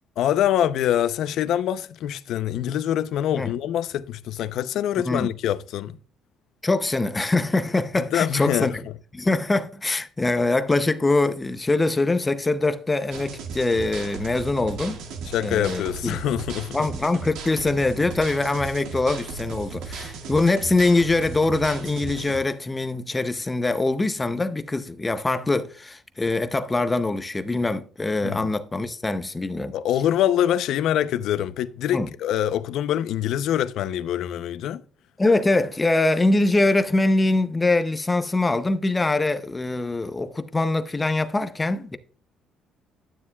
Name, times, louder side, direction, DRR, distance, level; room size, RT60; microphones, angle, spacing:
voice 1, 0.2-6.0 8.1-8.8 15.3-16.8 28.2-28.5 29.7-34.8, left 11 dB, 65° left, 0.6 m, -24 dB
voice 2, 6.6-8.8 9.1-15.0 15.4-16.2 16.7-29.8 31.9-32.1 35.2-42.0, left 2 dB, 15° left, 0.6 m, -23 dB
sound 1, 13.1-22.4, right 5 dB, 85° right, 2.0 m, -36 dB
12.0 x 9.5 x 2.3 m
cardioid pair, 155°, 0 cm